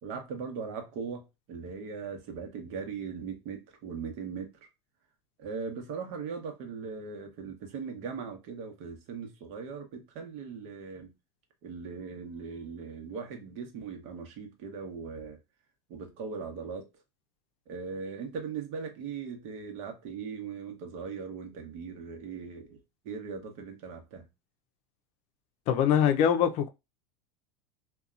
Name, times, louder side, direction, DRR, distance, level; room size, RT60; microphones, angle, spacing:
voice 1, 0.0-4.5 5.4-11.1 11.6-15.4 15.9-16.9 17.7-22.8 23.0-24.3, right 5 dB, 60° right, 1.0 m, -39 dB
voice 2, 25.7-26.7, left 9 dB, 50° left, 0.5 m, -23 dB
2.7 x 2.3 x 2.4 m
supercardioid pair, 115°, 14 cm